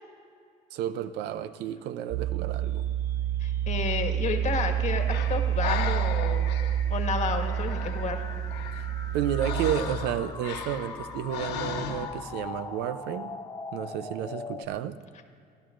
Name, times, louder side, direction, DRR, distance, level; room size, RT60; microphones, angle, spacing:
voice 1, 0.7-2.8 9.1-13.3 13.7-15.0, right 10 dB, 85° right, 13 dB, 0.6 m, -31 dB
sound 1, 2.1-9.8, right 10 dB, 45° right, 0.8 m, -28 dB
sound 2, 2.8-14.7, left 4 dB, 20° left, 1.1 m, -43 dB
voice 2, 3.4-6.5 6.9-8.2, left 5 dB, 40° left, 4 dB, 1.6 m, -31 dB
Breathing, 4.5-12.3, left 7 dB, 80° left, 1.0 m, -38 dB
27.5 x 12.5 x 2.5 m, 2.3 s
cardioid pair, 110°, 17 cm